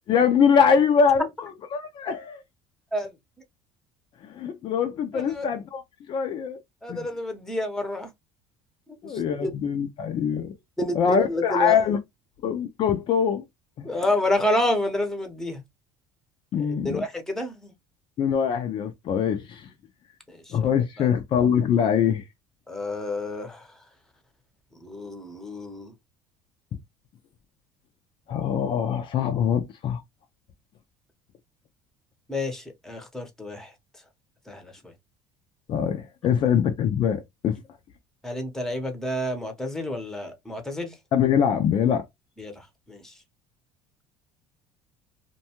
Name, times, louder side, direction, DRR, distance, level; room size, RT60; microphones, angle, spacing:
voice 1, 0.1-2.4 4.2-5.8 6.1-6.6 6.9-7.1 9.0-10.5 10.9-12.0 12.4-13.4 13.8-13.9 16.5-17.0 18.2-19.7 20.5-22.2 28.3-30.0 35.7-37.6 41.1-42.0, left 7 dB, 50° left, 0.5 m, -23 dB
voice 2, 5.1-5.5 6.8-8.1 9.0-9.5 10.8-11.8 13.8-15.6 16.6-17.7 20.3-20.6 21.0-21.1 22.7-23.7 24.7-25.9 32.3-33.7 34.5-34.7 38.2-40.9 42.4-43.1, left 1 dB, 5° left, 0.8 m, -29 dB
2.6 x 2.2 x 2.9 m
supercardioid pair, 105°, 11 cm